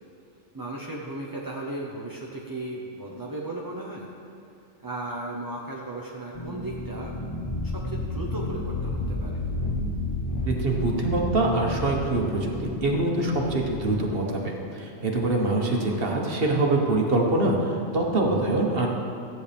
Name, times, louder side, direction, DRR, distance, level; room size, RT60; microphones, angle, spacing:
voice 1, 0.5-4.1 4.8-7.1 7.6-9.4 15.7-16.0, right 2 dB, 20° right, -3 dB, 0.8 m, -36 dB
sound 1, 6.3-13.8, left 2 dB, 30° left, 0.9 m, -31 dB
voice 2, 10.5-18.9, right 2 dB, 50° right, 0 dB, 1.5 m, -24 dB
15.0 x 9.3 x 3.5 m, 2.5 s
omnidirectional pair, 1.3 m